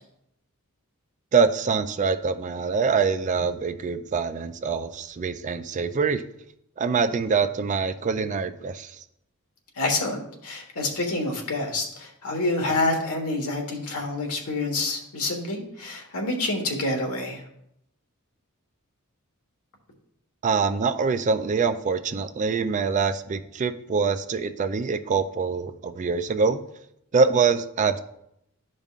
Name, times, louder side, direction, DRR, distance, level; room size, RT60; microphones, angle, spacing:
voice 1, 1.3-6.2 6.8-9.0 20.4-26.6 27.1-28.0, right 5 dB, 35° right, 10 dB, 0.3 m, -24 dB
voice 2, 9.8-17.4, left 2 dB, 80° left, 2 dB, 1.4 m, -27 dB
12.0 x 5.2 x 2.4 m, 0.77 s
head